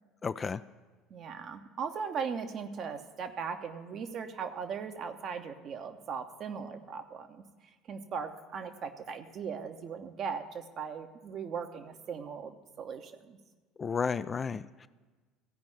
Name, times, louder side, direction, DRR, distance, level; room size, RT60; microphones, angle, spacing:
voice 1, 0.2-0.6 13.8-14.9, left 5 dB, 30° left, 13 dB, 0.3 m, -32 dB
voice 2, 1.1-7.4 7.9-13.4, right 6 dB, 45° right, 7 dB, 0.9 m, -38 dB
15.5 x 5.3 x 9.0 m, 1.3 s
figure-of-eight pair, 60°, 0 cm